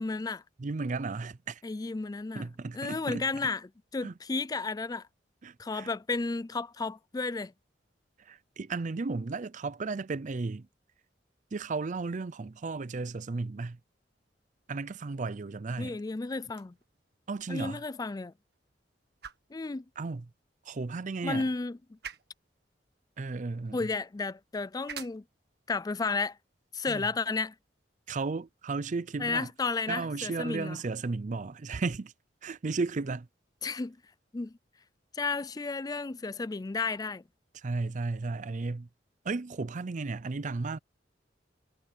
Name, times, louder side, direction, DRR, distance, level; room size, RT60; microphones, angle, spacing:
voice 1, 0.0-0.4 1.6-2.5 2.7-3.7 3.9-5.0 5.6-7.5 15.8-16.7 17.5-18.3 19.5-19.8 21.2-21.8 23.7-25.2 25.7-26.4 26.7-27.5 29.2-30.8 33.6-34.0 34.3-34.5 35.1-37.2, left 3 dB, 20° left, 0.4 m, -32 dB
voice 2, 0.6-1.6 2.3-3.5 4.0-4.1 5.4-5.9 8.2-10.7 11.5-13.8 14.7-16.0 17.3-17.8 20.0-20.3 20.7-21.5 23.2-23.9 26.9-27.1 28.1-29.5 29.9-32.1 32.4-33.3 37.5-38.9 39.2-40.8, right 3 dB, 45° right, 0.5 m, -34 dB
sound 1, 16.4-28.5, right 7 dB, 65° right, 1.7 m, -52 dB
head